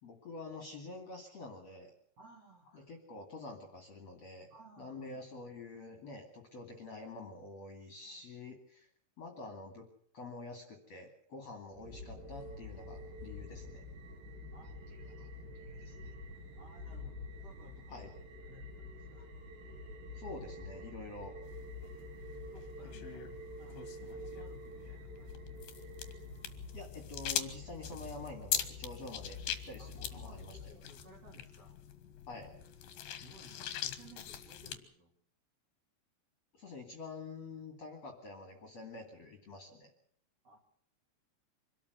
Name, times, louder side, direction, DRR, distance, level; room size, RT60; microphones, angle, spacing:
voice 1, 0.0-1.9 2.7-4.5 4.8-8.9 9.2-9.9 10.1-13.8 17.9-18.1 20.1-21.4 26.7-30.5 32.3-32.5 36.5-39.9, left 3 dB, 40° left, 4 dB, 2.7 m, -47 dB
voice 2, 2.2-2.7 4.5-5.1 14.5-16.1 16.5-18.1 18.4-19.3 22.5-23.3 23.6-25.6 29.8-31.8 33.2-35.1 40.4-40.6, right 1 dB, 35° right, 1 dB, 3.5 m, -59 dB
sound 1, 11.7-30.7, left 2 dB, 60° right, 4.9 m, -47 dB
sound 2, 21.4-34.8, left 10 dB, 65° left, 2.7 m, -43 dB
25.5 x 13.0 x 8.1 m, 0.62 s
omnidirectional pair, 5.6 m